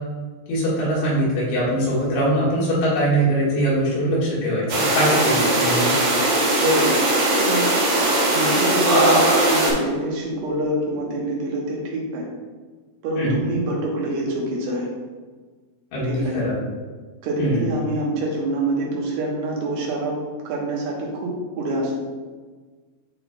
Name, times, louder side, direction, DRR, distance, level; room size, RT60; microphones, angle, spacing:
voice 1, 0.5-5.9 13.2-13.4 15.9-16.5 17.4-17.6, right 1 dB, 85° left, -7 dB, 4.0 m, -22 dB
sound 1, 4.7-9.7, right 1 dB, 70° right, 3.6 m, -19 dB
voice 2, 6.5-7.0 7.4-7.7 8.0-12.2 13.0-14.9 16.0-16.4 17.2-20.2 20.4-21.9, right 1 dB, 85° right, -3 dB, 3.3 m, -26 dB
10.5 x 4.0 x 2.3 m, 1.4 s
omnidirectional pair, 4.6 m